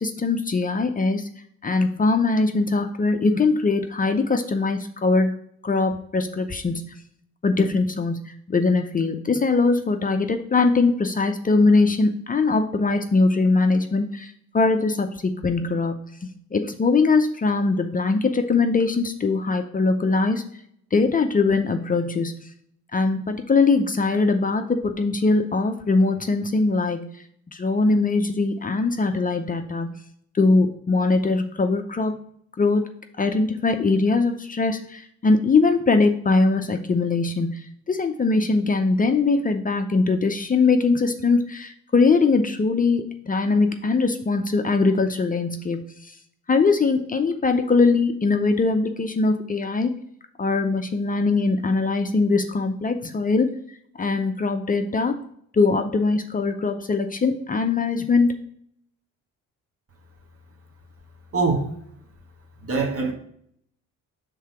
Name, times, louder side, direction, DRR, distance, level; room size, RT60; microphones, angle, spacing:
voice 1, 0.0-1.3 1.6-5.3 5.6-6.9 7.4-20.4 20.9-22.4 22.9-27.0 27.5-30.0 30.3-32.1 32.6-32.8 33.2-45.9 46.5-49.9 50.4-53.5 54.0-55.2 55.5-58.3, left 3 dB, 30° left, 6 dB, 0.6 m, -21 dB
voice 2, 61.3-61.7 62.6-63.1, right 4 dB, 50° right, 2 dB, 1.7 m, -23 dB
5.6 x 3.8 x 5.7 m, 0.66 s
cardioid pair, 90°, 30 cm